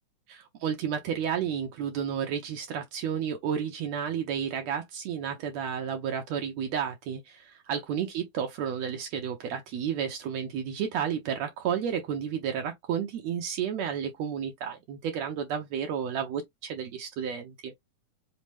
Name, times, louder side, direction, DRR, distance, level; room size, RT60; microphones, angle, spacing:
voice 1, 0.3-17.7, right 8 dB, 80° right, 1.6 m, -32 dB
5.7 x 2.0 x 3.1 m
omnidirectional pair, 4.0 m